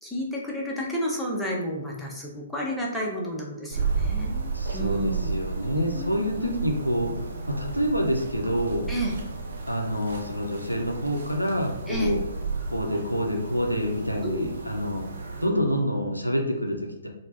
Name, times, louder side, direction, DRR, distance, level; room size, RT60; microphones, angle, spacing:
voice 1, 0.0-5.4 5.7-6.6 8.9-9.1 11.9-12.1 14.2-14.5, equal, ahead, -4 dB, 0.5 m, -31 dB
sound 1, 3.7-15.5, right 4 dB, 55° right, 0.5 m, -33 dB
voice 2, 4.5-8.9 9.7-12.2 12.7-15.0 15.4-17.1, equal, 90° left, 2 dB, 0.4 m, -27 dB
3.2 x 2.0 x 2.4 m, 0.90 s
figure-of-eight pair, 125°, 0 cm